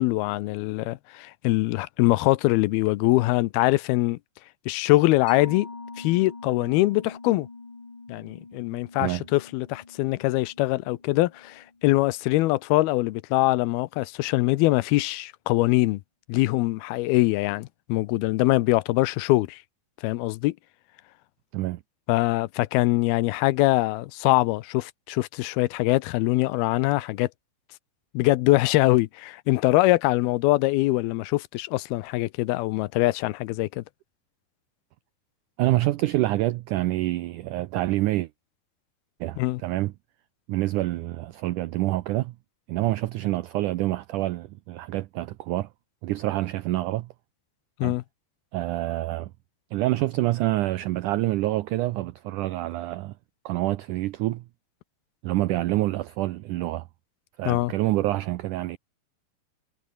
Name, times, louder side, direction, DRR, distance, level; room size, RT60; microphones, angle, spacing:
voice 1, 0.0-4.2 4.7-5.7 6.0-7.5 8.1-16.0 16.3-19.6 20.0-20.6 22.1-27.3 28.1-33.8 39.4-39.6 47.8-48.0 57.5-57.7, left 19 dB, 80° left, 2.6 m, -23 dB
Mallet percussion, 5.3-12.3, left 3 dB, 30° left, 5.6 m, -44 dB
voice 2, 35.6-38.3 39.2-39.9 40.5-42.3 42.7-45.7 46.0-47.1 47.8-47.9 48.5-49.3 49.7-53.1 53.5-54.4 55.2-56.8 57.4-58.8, right 16 dB, 90° right, 1.7 m, -27 dB
omnidirectional pair, 4.5 m